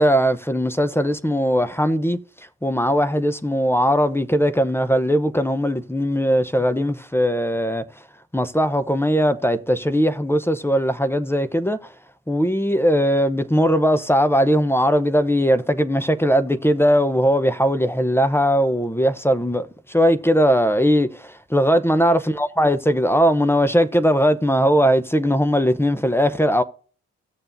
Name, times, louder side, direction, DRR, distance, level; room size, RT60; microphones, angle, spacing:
voice 1, 0.0-2.2 2.6-7.8 8.3-11.9 12.3-26.6, equal, 10° left, 0.8 m, -19 dB
16.5 x 6.7 x 2.6 m
supercardioid pair, 60°, 30 cm